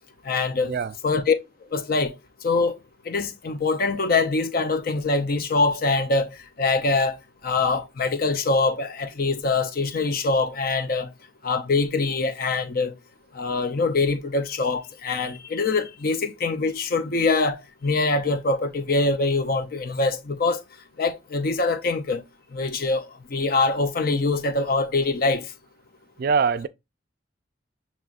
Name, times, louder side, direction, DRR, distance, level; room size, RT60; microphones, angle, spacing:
voice 1, 0.2-0.7 1.0-1.4 1.7-2.1 2.4-2.8 3.1-6.3 6.6-7.2 7.4-11.1 11.4-12.9 13.3-20.6 21.0-22.2 22.5-25.5, left 3 dB, 50° left, 0.6 m, -24 dB
voice 2, 26.2-26.7, right 5 dB, 50° right, 0.3 m, -23 dB
7.3 x 3.0 x 2.4 m
head